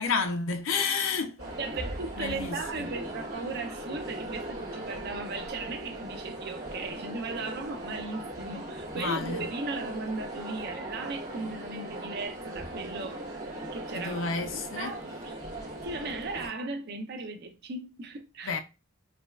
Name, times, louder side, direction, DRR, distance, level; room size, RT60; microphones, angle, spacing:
voice 1, 0.0-1.4 2.2-2.9 8.9-9.5 13.9-14.9 18.4-18.6, left 5 dB, 60° left, 0.5 m, -30 dB
sound 1, 1.4-16.5, right 1 dB, 85° right, 1.7 m, -39 dB
voice 2, 1.6-13.2 13.7-14.2 14.5-15.3 15.8-18.6, right 3 dB, 50° right, 0.5 m, -37 dB
5.0 x 2.3 x 2.3 m
head